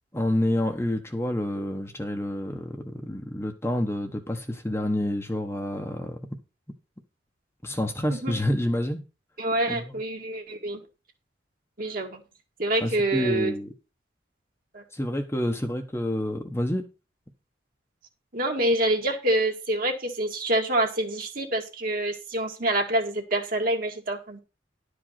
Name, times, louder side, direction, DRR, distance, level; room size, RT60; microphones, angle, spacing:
voice 1, 0.1-6.2 7.6-9.0 9.7-10.0 12.8-13.7 14.9-16.9, left 1 dB, 15° left, 1.1 m, -28 dB
voice 2, 9.4-10.8 11.8-12.2 12.6-13.5 14.7-14.8 18.3-24.4, right 1 dB, 50° right, 2.1 m, -26 dB
11.5 x 5.0 x 5.8 m
head